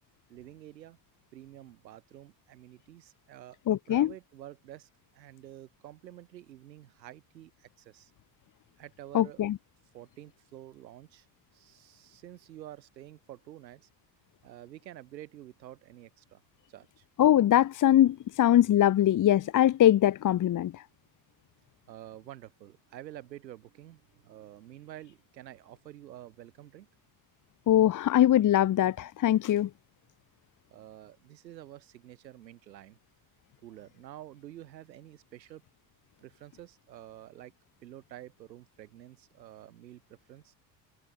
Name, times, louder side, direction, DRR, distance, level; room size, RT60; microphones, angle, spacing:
voice 1, 0.3-1.0 1.3-8.1 8.8-9.5 9.9-11.3 11.5-13.9 14.4-16.4 16.7-17.0 21.9-26.9 30.7-33.0 33.6-35.6 36.2-37.5 37.8-40.5, right 13 dB, 85° right, 7.5 m, -49 dB
voice 2, 3.7-4.1 9.1-9.5 17.2-20.7 27.7-29.7, left 12 dB, 40° left, 1.2 m, -22 dB
hypercardioid pair, 70°, 49 cm